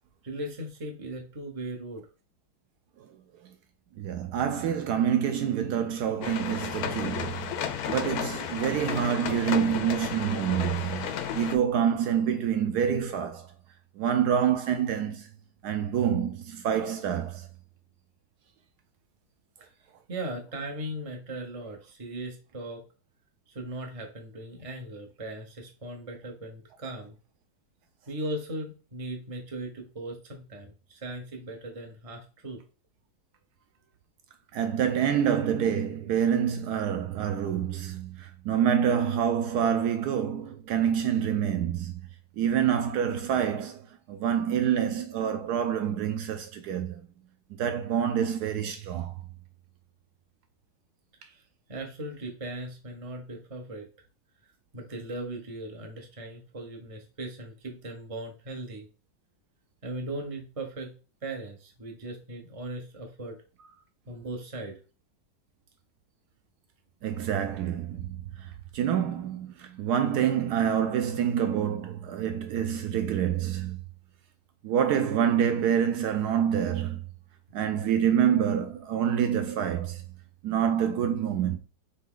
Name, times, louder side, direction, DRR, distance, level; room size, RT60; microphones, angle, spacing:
voice 1, 0.2-2.0 20.1-22.8 23.5-27.1 28.1-32.6 51.3-51.4 51.7-53.9 54.7-58.9 59.8-60.9 61.2-63.4 64.1-64.8, right 1 dB, 50° right, 0.4 m, -38 dB
voice 2, 4.0-7.5 7.9-11.1 11.3-13.5 14.0-15.3 15.6-17.5 34.5-42.0 42.4-47.0 47.5-49.1 67.0-73.8 74.6-77.0 77.5-80.0 80.4-81.6, right 8 dB, 75° right, 0.9 m, -27 dB
sound 1, 6.2-11.5, left 8 dB, 70° left, 0.9 m, -33 dB
4.1 x 3.4 x 3.7 m
omnidirectional pair, 2.1 m